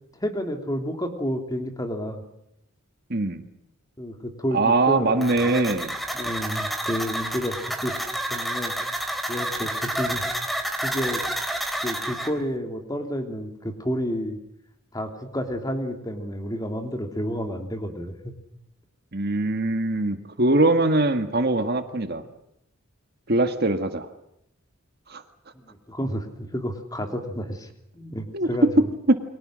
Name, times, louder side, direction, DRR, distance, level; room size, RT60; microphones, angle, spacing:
voice 1, 0.1-2.2 4.0-5.8 6.1-8.0 8.3-8.7 9.3-10.2 10.8-11.2 11.8-14.4 14.9-18.3 25.6-27.7 27.9-28.9, equal, 15° left, 5 dB, 3.1 m, -30 dB
voice 2, 3.1-3.4 4.5-5.9 19.1-22.2 23.3-24.1 25.1-25.2 28.3-28.5 29.1-29.2, right 2 dB, 45° right, 8 dB, 1.8 m, -22 dB
sound 1, 5.2-12.3, right 1 dB, ahead, 3.1 m, -29 dB
30.0 x 23.5 x 6.4 m, 0.79 s
head